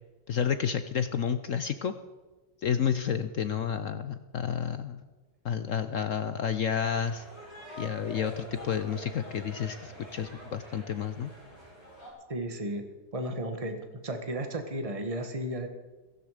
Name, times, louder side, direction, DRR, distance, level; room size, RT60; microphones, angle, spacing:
voice 1, 0.3-1.9 2.6-5.0 5.4-7.2 7.8-11.3, left 7 dB, 60° left, 11 dB, 0.8 m, -30 dB
sound 1, 6.7-12.1, equal, 25° left, 7.7 m, -46 dB
voice 2, 12.3-12.8 13.1-13.8 14.0-15.7, right 1 dB, 20° right, 6 dB, 1.5 m, -33 dB
16.0 x 16.0 x 5.1 m, 1.2 s
omnidirectional pair, 2.0 m